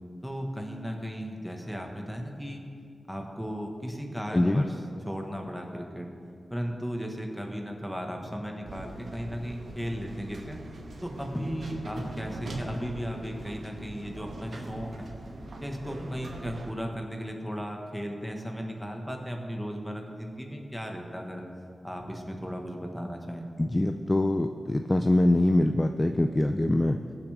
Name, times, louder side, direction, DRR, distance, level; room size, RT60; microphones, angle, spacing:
voice 1, 0.2-2.6 3.1-4.7 5.0-6.1 6.5-10.6 11.0-15.1 15.6-21.4 21.8-23.5, equal, ahead, 2 dB, 1.4 m, -36 dB
voice 2, 4.3-4.7 23.6-27.0, left 1 dB, 20° left, 6 dB, 0.4 m, -24 dB
sound 1, 8.6-16.7, right 2 dB, 65° right, 1.3 m, -41 dB
20.0 x 7.1 x 3.5 m, 2.4 s
wide cardioid pair, 115°, 0 cm